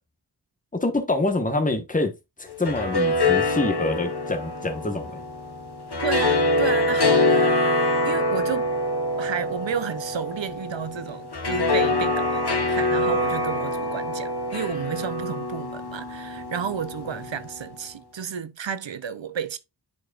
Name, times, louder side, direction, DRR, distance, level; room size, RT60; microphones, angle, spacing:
voice 1, 0.7-2.1 2.4-5.2, left 2 dB, 20° left, 1.3 m, -26 dB
sound 1, 2.5-17.7, left 2 dB, 60° left, 1.4 m, -25 dB
voice 2, 6.0-7.6 8.0-8.7 9.2-19.6, right 7 dB, 90° right, 0.7 m, -32 dB
9.3 x 4.8 x 2.4 m
wide cardioid pair, 50°, 44 cm